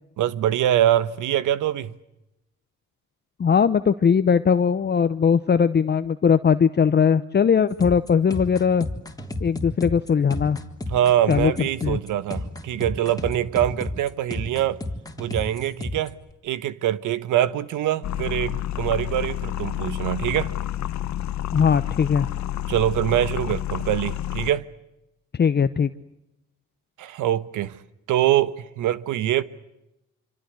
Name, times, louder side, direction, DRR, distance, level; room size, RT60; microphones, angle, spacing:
voice 1, 0.2-1.9 10.9-14.8 15.2-16.1 16.4-20.5 22.7-24.6 27.0-27.8 28.1-29.4, right 12 dB, 85° right, 1.3 m, -24 dB
voice 2, 3.4-8.9 9.4-10.6 11.3-11.5 11.8-12.0 21.5-22.3 25.4-25.9, left 6 dB, 35° left, 0.9 m, -19 dB
sound 1, 7.7-16.1, left 1 dB, 10° left, 3.5 m, -32 dB
sound 2, 18.0-24.5, left 12 dB, 65° left, 1.1 m, -29 dB
26.5 x 26.0 x 7.9 m
cardioid pair, 90°, 30 cm